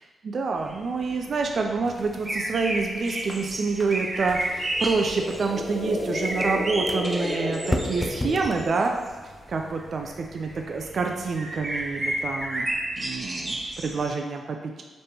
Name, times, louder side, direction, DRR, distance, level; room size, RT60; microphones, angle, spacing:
voice 1, 0.2-8.9 9.5-12.7 13.0-14.8, right 4 dB, 60° right, 3 dB, 0.4 m, -27 dB
sound 1, 0.6-14.1, right 1 dB, 30° right, 0.7 m, -32 dB
sound 2, 1.8-12.6, left 1 dB, 20° left, 0.4 m, -38 dB
sound 3, 4.5-8.9, left 1 dB, 50° left, 1.0 m, -32 dB
5.2 x 3.4 x 2.9 m, 1.4 s
supercardioid pair, 45°, 0 cm